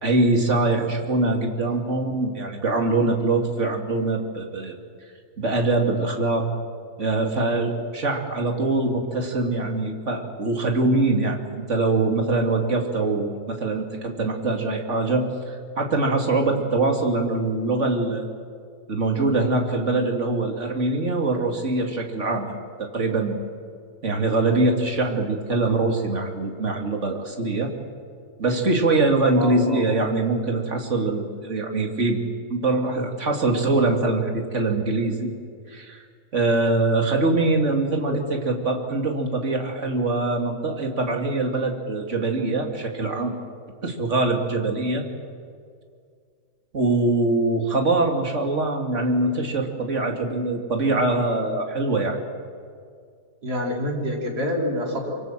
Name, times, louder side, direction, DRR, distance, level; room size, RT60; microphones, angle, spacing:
voice 1, 0.0-4.7 5.4-6.5 7.0-18.3 18.9-23.4 24.0-27.7 28.4-32.2 32.5-35.3 35.7-36.0 36.3-43.3 43.8-45.0 46.7-52.2, right 2 dB, 40° right, 2 dB, 3.0 m, -23 dB
voice 2, 29.3-29.8 38.1-38.2 53.4-55.2, left 1 dB, 65° right, -1 dB, 4.6 m, -27 dB
25.5 x 24.5 x 7.6 m, 2.2 s
omnidirectional pair, 1.9 m